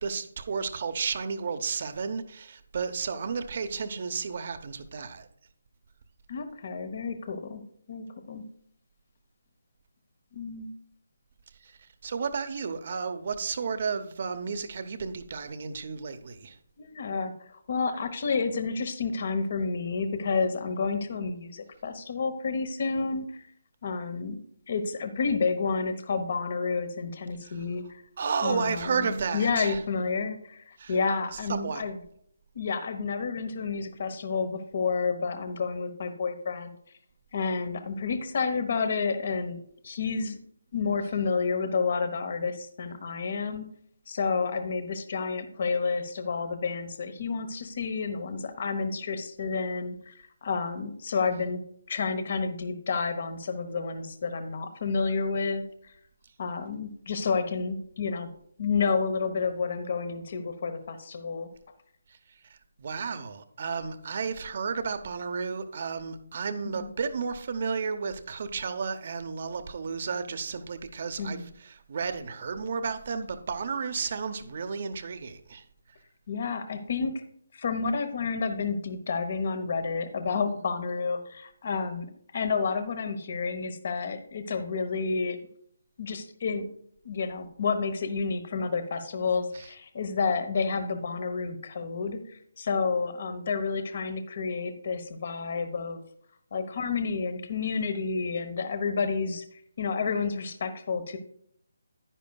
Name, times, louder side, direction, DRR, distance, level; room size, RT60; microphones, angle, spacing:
voice 1, 0.0-5.3 11.6-11.7 12.0-16.6 27.4-27.6 28.2-29.8 30.8-30.9 31.3-31.8 62.1-62.2 62.5-75.6, right 5 dB, 45° right, 10 dB, 0.8 m, -32 dB
voice 2, 6.3-7.6 7.9-8.4 10.3-10.7 16.8-23.5 23.8-24.4 24.7-28.0 28.4-32.0 32.5-36.8 37.3-40.4 40.7-43.6 44.1-51.6 51.9-55.9 56.4-58.3 58.6-61.5 66.6-66.9 71.2-71.4 76.3-77.2 77.5-85.4 86.0-86.7 87.0-96.0 96.5-99.4 99.8-101.2, left 4 dB, 50° left, 10 dB, 1.0 m, -30 dB
10.5 x 10.0 x 2.3 m, 0.66 s
figure-of-eight pair, 155°, 0 cm